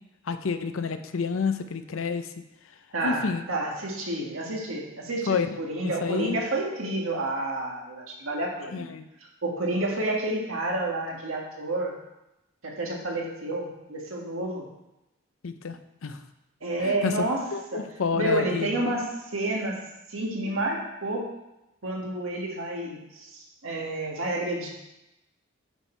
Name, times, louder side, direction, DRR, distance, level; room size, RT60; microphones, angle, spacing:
voice 1, 0.3-2.3 3.0-3.4 5.3-6.4 8.7-9.1 15.4-16.2 16.8-17.1 17.5-18.8, left 5 dB, 80° left, 10 dB, 0.6 m, -29 dB
voice 2, 2.9-8.9 9.4-11.9 12.6-14.7 16.6-17.5 17.7-17.8 18.1-19.8 20.1-21.3 21.8-24.7, right 1 dB, 80° right, -1 dB, 1.7 m, -30 dB
10.0 x 4.4 x 4.5 m, 0.92 s
head